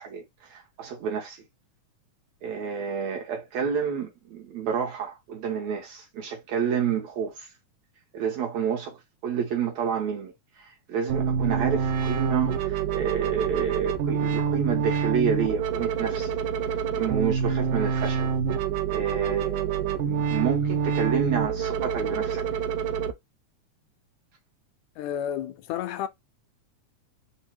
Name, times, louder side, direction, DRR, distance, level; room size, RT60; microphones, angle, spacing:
voice 1, 0.0-1.4 2.4-7.5 8.1-16.4 16.9-18.3 18.9-22.4, right 7 dB, 70° right, 2.1 m, -29 dB
sound 1, 11.1-23.1, right 7 dB, 85° right, 2.4 m, -27 dB
voice 2, 25.0-26.1, left 10 dB, 80° left, 1.7 m, -31 dB
4.8 x 2.1 x 4.4 m
omnidirectional pair, 3.5 m